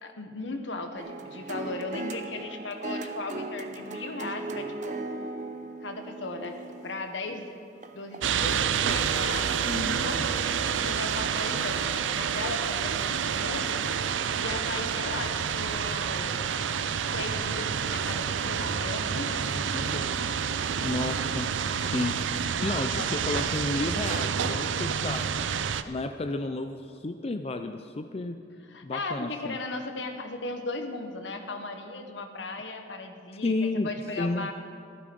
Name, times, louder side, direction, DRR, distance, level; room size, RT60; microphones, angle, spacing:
voice 1, 0.0-5.0 5.8-6.5 6.8-7.5 7.9-11.8 12.1-13.8 14.4-16.4 17.1-20.1 23.0-23.1 28.7-33.5 33.8-34.5, left 2 dB, 75° left, 5 dB, 1.3 m, -37 dB
sound 1, 1.0-8.4 9.0-9.1, right 3 dB, 40° right, 0.7 m, -38 dB
sound 2, 8.2-25.8, right 7 dB, 90° right, 0.5 m, -28 dB
voice 2, 9.7-10.0 19.4-20.1 20.8-21.5 21.8-25.4 25.8-28.4 28.8-29.6 33.4-33.9 34.2-34.5, left 2 dB, 30° left, 7 dB, 0.5 m, -32 dB
15.0 x 12.5 x 5.3 m, 2.4 s
head